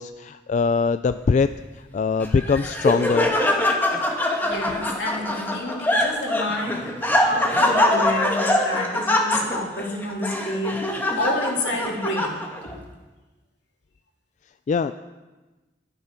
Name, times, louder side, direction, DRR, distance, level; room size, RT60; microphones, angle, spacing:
voice 1, 0.0-1.5 1.9-3.3 14.7-14.9, left 5 dB, 40° left, 11 dB, 0.3 m, -22 dB
Laughter, 2.2-12.7, left 1 dB, 10° left, 1.3 m, -23 dB
voice 2, 4.4-12.4 12.6-12.8, left 1 dB, 75° left, -1 dB, 2.9 m, -29 dB
12.0 x 11.0 x 5.8 m, 1.2 s
head